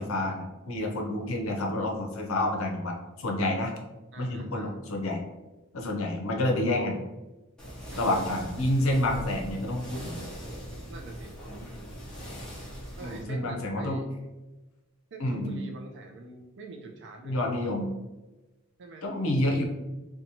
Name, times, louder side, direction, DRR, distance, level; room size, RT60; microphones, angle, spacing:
voice 1, 0.0-3.7 4.2-5.2 5.7-7.0 8.0-10.2 12.3-12.4 13.0-14.0 15.2-15.6 17.2-17.9 19.0-19.6, left 1 dB, 70° left, 1 dB, 0.6 m, -29 dB
voice 2, 4.1-4.7 7.9-8.2 10.9-11.4 13.0-14.1 15.1-17.4 18.8-19.1, right 2 dB, 55° right, 3 dB, 0.4 m, -44 dB
sound 1, 7.6-13.2, equal, 5° left, 0.6 m, -40 dB
2.9 x 2.2 x 2.6 m, 1.1 s
head